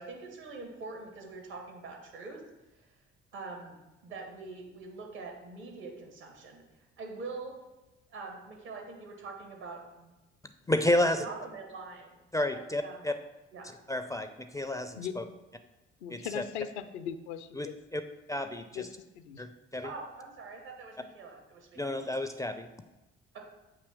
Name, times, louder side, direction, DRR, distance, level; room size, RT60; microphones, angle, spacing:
voice 1, 0.0-2.4 2.7-2.9 3.3-3.8 4.0-6.6 7.0-7.5 8.1-10.1 11.2-12.2 12.5-13.1 13.5-13.7 19.8-21.8 23.3-23.4, right 3 dB, 75° right, 1 dB, 1.7 m, -44 dB
voice 2, 10.7-11.2 12.3-13.1 13.9-15.2 16.1-16.4 17.6-17.7 17.9-18.0 18.3-18.9 19.4-19.9 21.8-22.7, left 1 dB, 10° left, 8 dB, 0.4 m, -30 dB
voice 3, 16.0-17.8 18.7-19.4, left 8 dB, 75° left, 10 dB, 0.5 m, -39 dB
7.9 x 2.9 x 6.0 m, 1.0 s
figure-of-eight pair, 50°, 34 cm